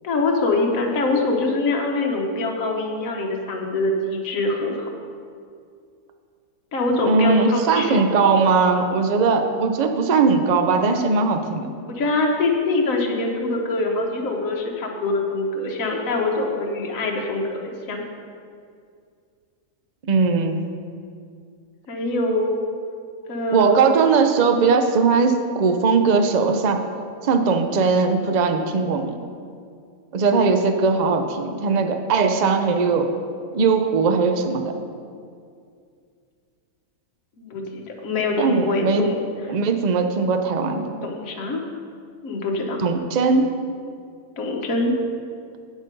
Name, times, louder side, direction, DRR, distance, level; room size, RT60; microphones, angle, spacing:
voice 1, 0.0-4.9 6.7-8.0 11.9-17.6 17.9-18.0 21.9-22.7 23.3-23.8 30.3-30.5 37.4-39.2 41.0-41.6 42.2-42.8 44.4-45.0, left 2 dB, 65° left, 0 dB, 1.5 m, -24 dB
voice 2, 7.0-11.7 20.0-20.7 23.5-26.8 27.2-29.2 30.1-33.1 33.5-34.7 38.4-39.1 39.5-41.1 42.8-43.5, right 4 dB, 50° right, 6 dB, 0.5 m, -19 dB
8.4 x 7.9 x 5.3 m, 2.3 s
omnidirectional pair, 1.6 m